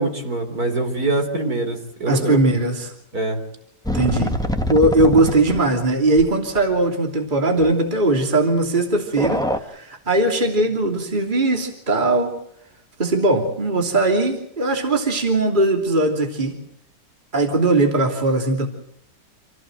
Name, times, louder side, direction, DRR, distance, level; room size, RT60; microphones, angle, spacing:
voice 1, 0.0-2.4 3.1-3.4, right 2 dB, 60° right, 4 dB, 4.5 m, -24 dB
voice 2, 2.1-2.9 3.9-4.4 4.7-12.3 13.0-16.6 17.3-18.7, right 2 dB, 25° right, 3 dB, 3.1 m, -19 dB
sound 1, 3.9-5.8 6.2-6.3 6.6-6.7 7.6-7.7 9.2-9.6, left 1 dB, ahead, 1.4 m, -24 dB
27.5 x 17.0 x 7.9 m, 0.76 s
omnidirectional pair, 1.8 m